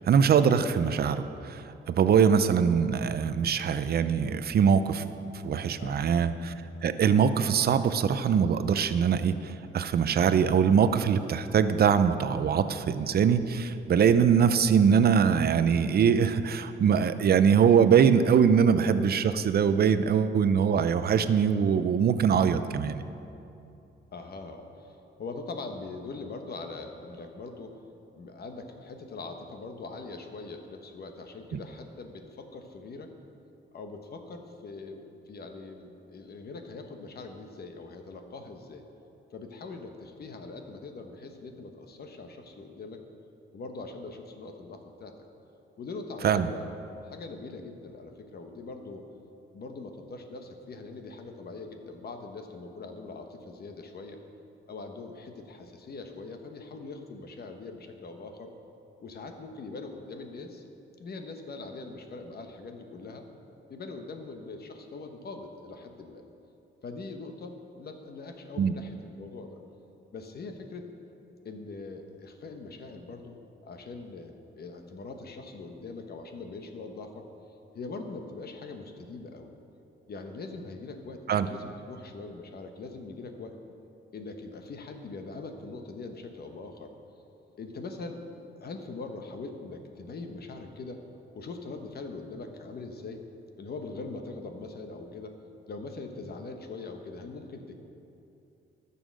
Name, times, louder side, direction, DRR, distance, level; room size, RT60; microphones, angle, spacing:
voice 1, 0.1-5.0 5.4-6.5 6.8-23.0 46.2-46.5 68.6-68.7 81.3-81.5, right 7 dB, 50° right, 11 dB, 0.5 m, -23 dB
voice 2, 5.8-6.2 24.1-27.8 28.1-33.1 33.7-38.8 39.3-43.0 43.5-45.1 45.8-46.7 47.0-49.0 49.5-54.2 54.7-58.5 59.0-60.6 61.0-63.2 63.7-66.2 66.8-69.6 70.1-70.9 71.4-73.4 73.6-77.2 77.7-79.5 80.1-83.5 84.1-86.9 87.6-88.2 88.6-91.0 91.3-93.2 93.6-95.3 95.7-97.8, left 3 dB, 50° left, 5 dB, 1.1 m, -42 dB
12.5 x 7.0 x 6.3 m, 2.8 s
cardioid pair, 135°, 21 cm